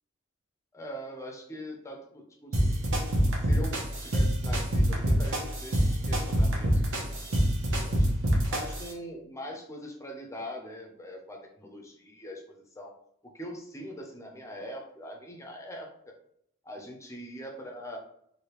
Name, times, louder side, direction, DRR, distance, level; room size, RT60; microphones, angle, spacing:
voice 1, 0.7-2.7 3.1-8.1 8.5-12.9 13.3-16.1 16.6-18.0, equal, 15° left, 2 dB, 0.6 m, -42 dB
sound 1, 2.5-8.9, equal, 65° right, 0.9 m, -26 dB
3.3 x 2.7 x 3.0 m, 0.71 s
head